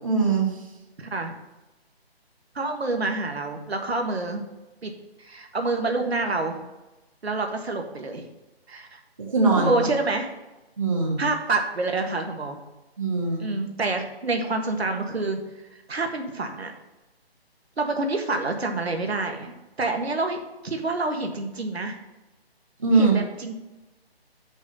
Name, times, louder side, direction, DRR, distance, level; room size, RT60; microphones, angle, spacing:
voice 1, 0.0-0.6 9.3-9.9 10.8-11.3 13.0-13.5 22.8-23.2, right 3 dB, 30° right, -1 dB, 1.2 m, -22 dB
voice 2, 1.0-1.3 2.5-4.4 4.8-4.9 5.2-6.6 7.2-8.2 8.7-9.0 9.5-10.3 11.2-12.6 13.4-15.4 15.9-16.7 17.8-19.5 19.8-20.4 20.6-21.9 22.9-23.5, right 3 dB, 75° right, 4 dB, 1.6 m, -27 dB
6.2 x 5.7 x 6.3 m, 1.0 s
hypercardioid pair, 180°, 32 cm